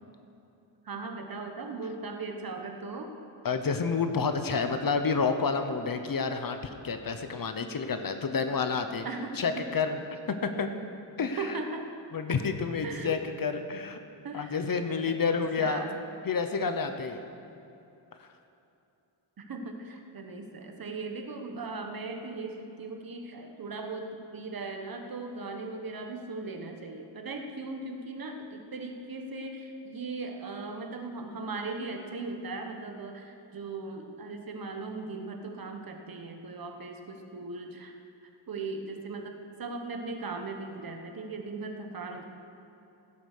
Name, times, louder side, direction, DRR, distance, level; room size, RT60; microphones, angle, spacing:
voice 1, 0.8-3.1 9.0-9.6 11.4-11.9 12.8-13.2 14.2-14.6 15.1-15.2 15.6-16.0 19.4-37.9 38.5-42.2, right 3 dB, 50° right, 4 dB, 1.1 m, -38 dB
voice 2, 3.4-9.0 9.4-10.0 10.4-10.7 11.2-11.5 12.1-14.0 14.3-15.8 16.2-17.2 18.2-18.3, left 5 dB, 50° left, 7 dB, 0.8 m, -29 dB
16.0 x 7.9 x 6.5 m, 2.7 s
wide cardioid pair, 175°, 46 cm